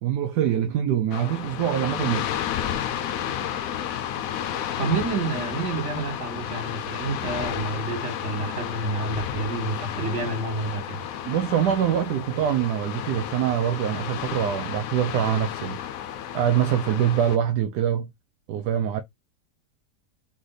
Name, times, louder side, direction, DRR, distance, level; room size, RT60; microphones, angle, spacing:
voice 1, 0.0-2.3 9.0-9.2 11.3-15.8 16.3-18.1 18.5-19.0, right 10 dB, 75° right, 1.1 m, -24 dB
sound 1, 1.1-17.4, left 10 dB, 65° left, 0.9 m, -32 dB
voice 2, 4.8-11.0, right 3 dB, 45° right, 1.7 m, -29 dB
3.8 x 3.3 x 3.9 m
omnidirectional pair, 1.8 m